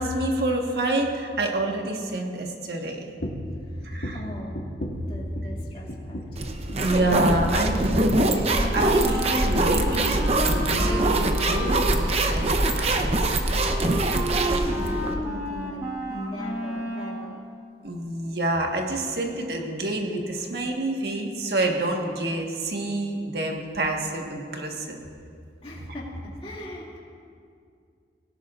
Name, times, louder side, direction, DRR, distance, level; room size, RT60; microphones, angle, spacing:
voice 1, 0.0-3.1 3.8-4.2 6.8-8.4 8.7-13.4 14.1-14.2 17.8-25.0, right 1 dB, 60° right, 1 dB, 1.5 m, -28 dB
sound 1, 3.2-3.6 4.0-5.6 5.9-6.4 6.7-6.9 7.2-9.6 9.9-10.4 10.7-10.9 11.2-11.3, equal, 80° left, 1.8 m, -36 dB
voice 2, 4.1-4.6 5.1-6.4 13.8-15.8 16.1-17.4 25.6-27.0, left 1 dB, 35° left, -5 dB, 2.4 m, -39 dB
sound 2, 6.4-15.2, right 2 dB, 35° right, 0.8 m, -23 dB
Wind instrument woodwind instrument, 8.4-17.3, equal, 20° right, 1.4 m, -33 dB
18.0 x 17.0 x 2.5 m, 2.3 s
head